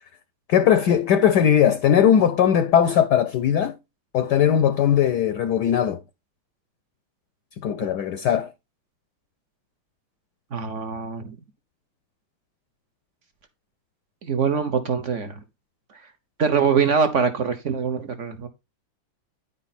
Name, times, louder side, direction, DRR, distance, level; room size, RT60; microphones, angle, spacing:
voice 1, 0.5-3.7 4.1-6.0 7.6-8.5, left 9 dB, 70° left, 1.0 m, -19 dB
voice 2, 10.5-11.3 14.2-15.3 16.4-18.5, right 6 dB, 55° right, 0.9 m, -23 dB
9.9 x 5.2 x 4.2 m
omnidirectional pair, 2.4 m